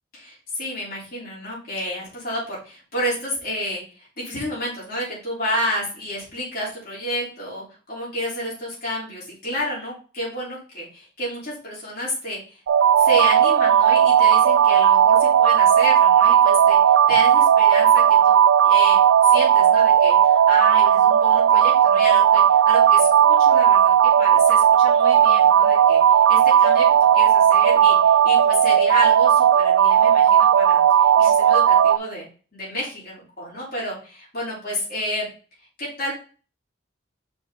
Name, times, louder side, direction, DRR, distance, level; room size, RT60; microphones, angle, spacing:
voice 1, 0.1-12.6 13.0-18.4 18.6-19.0 19.2-23.9 24.2-26.8 27.1-32.2 32.5-35.2 35.8-36.1, equal, 50° left, -7 dB, 3.4 m, -30 dB
sound 1, 12.7-32.0, right 9 dB, 85° right, 0.3 m, -15 dB
5.2 x 4.9 x 3.8 m, 0.37 s
head